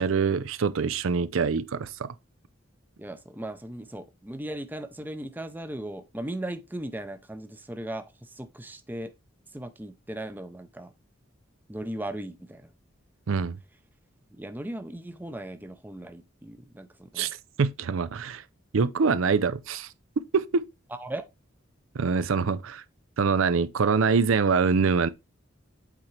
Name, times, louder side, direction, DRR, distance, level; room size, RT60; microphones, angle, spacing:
voice 1, 0.0-2.1 13.3-13.6 17.1-17.3 17.6-18.4 18.7-19.9 20.3-20.7 21.9-22.8 23.2-25.1, right 5 dB, 80° right, 0.5 m, -24 dB
voice 2, 3.0-9.1 9.5-10.9 11.7-12.7 14.3-17.3 20.9-21.2, right 1 dB, 10° right, 0.5 m, -37 dB
8.1 x 4.3 x 3.2 m
head